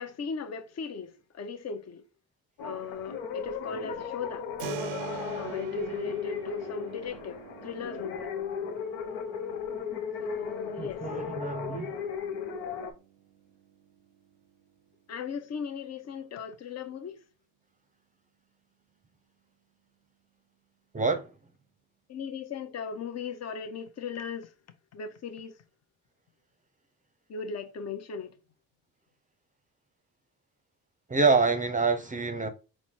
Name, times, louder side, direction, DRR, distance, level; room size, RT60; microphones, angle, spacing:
voice 1, 0.0-2.0 2.6-4.5 5.3-8.3 10.2-11.0 15.1-17.2 22.1-24.5 24.9-25.6 27.3-28.3, left 5 dB, 45° left, 0.7 m, -37 dB
sound 1, 2.6-12.9, left 7 dB, 90° left, 0.7 m, -36 dB
Keyboard (musical), 4.6-15.3, right 10 dB, 85° right, 0.5 m, -46 dB
voice 2, 10.8-11.9 20.9-21.3 31.1-32.5, right 4 dB, 20° right, 0.6 m, -26 dB
4.1 x 2.1 x 4.3 m
supercardioid pair, 65°, 36 cm